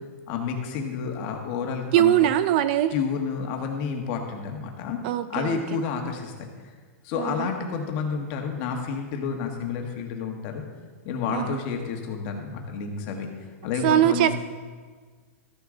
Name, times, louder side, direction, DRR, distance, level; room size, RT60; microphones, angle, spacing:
voice 1, 0.3-2.3 2.9-5.0 5.3-6.5 7.0-10.6 11.0-13.3 13.6-14.3, left 6 dB, 35° left, 3 dB, 1.5 m, -30 dB
voice 2, 1.9-2.9 5.0-5.6 7.1-7.5 11.3-11.6 13.8-14.3, right 12 dB, 40° right, 13 dB, 0.4 m, -21 dB
13.5 x 9.7 x 3.9 m, 1.5 s
supercardioid pair, 160°, 8 cm